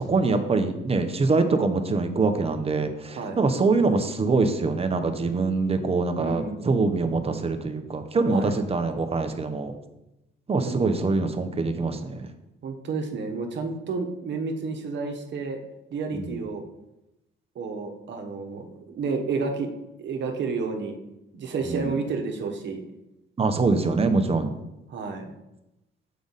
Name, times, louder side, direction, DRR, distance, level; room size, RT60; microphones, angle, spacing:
voice 1, 0.0-9.7 10.5-12.3 16.1-16.4 21.7-21.9 23.4-24.6, right 3 dB, 30° right, 7 dB, 0.8 m, -24 dB
voice 2, 6.2-6.7 8.3-8.6 10.6-10.8 12.6-15.6 15.9-16.6 17.5-19.7 20.0-21.0 21.3-22.8 24.9-25.3, right 4 dB, 65° right, 3 dB, 1.1 m, -30 dB
6.9 x 5.1 x 4.0 m, 0.93 s
cardioid pair, 90°, 20 cm